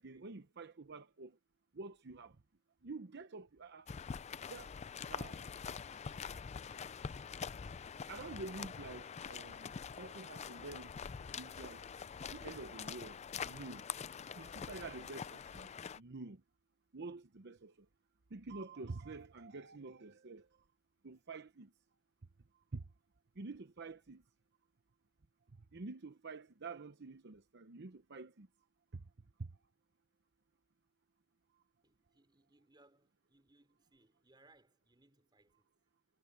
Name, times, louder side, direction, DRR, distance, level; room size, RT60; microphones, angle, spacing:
voice 1, 0.0-1.4 1.7-2.4 2.8-3.9 4.5-4.7 5.1-5.4 5.9-6.0 8.1-10.9 11.4-11.8 12.3-13.8 14.4-15.7 16.0-16.4 16.9-17.9 18.3-20.5 21.0-21.7 22.7-22.8 23.4-24.2 25.7-28.5 28.9-29.0 29.4-29.5, right 3 dB, 60° right, 0.8 m, -48 dB
sound 1, 3.9-16.0, left 6 dB, 35° left, 0.4 m, -45 dB
voice 2, 31.8-35.7, right 2 dB, 20° right, 3.8 m, -69 dB
head